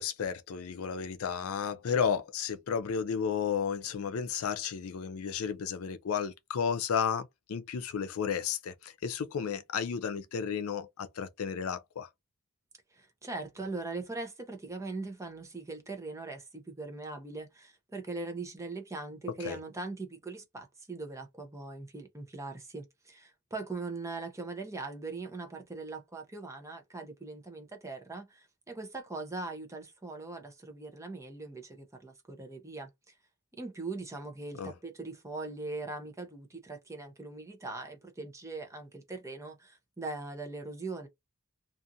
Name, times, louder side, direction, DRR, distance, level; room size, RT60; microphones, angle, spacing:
voice 1, 0.0-12.1 19.4-19.6 34.6-34.7, left 7 dB, 65° left, 0.4 m, -33 dB
voice 2, 12.9-33.1 33.6-41.1, right 3 dB, 15° right, 0.7 m, -41 dB
2.5 x 2.4 x 2.6 m
head